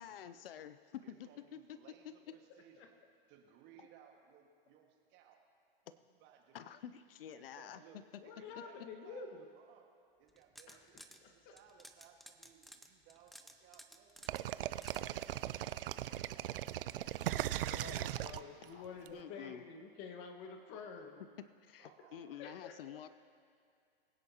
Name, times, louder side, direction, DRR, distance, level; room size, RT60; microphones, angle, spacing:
voice 1, 0.0-1.8 2.0-2.1 5.9-6.0 6.5-7.8 18.7-18.8 19.1-19.6 21.6-23.1, left 10 dB, 70° left, 13 dB, 0.6 m, -49 dB
voice 2, 1.0-3.0 3.3-5.4 6.2-7.0 7.3-9.9 10.2-16.6 17.3-17.7 18.2-19.6 21.8-22.4, right 8 dB, 40° right, 3 dB, 1.8 m, -63 dB
voice 3, 2.3-2.9 8.2-9.5 10.7-11.6 17.6-21.2 22.0-23.0, left 5 dB, 45° left, 5 dB, 1.6 m, -50 dB
sound 1, 10.3-11.2 11.6-15.0, equal, ahead, 0.5 m, -56 dB
sound 2, 14.3-19.1, right 13 dB, 70° right, 0.5 m, -38 dB
22.5 x 9.7 x 2.9 m, 2.3 s
hypercardioid pair, 115°, 29 cm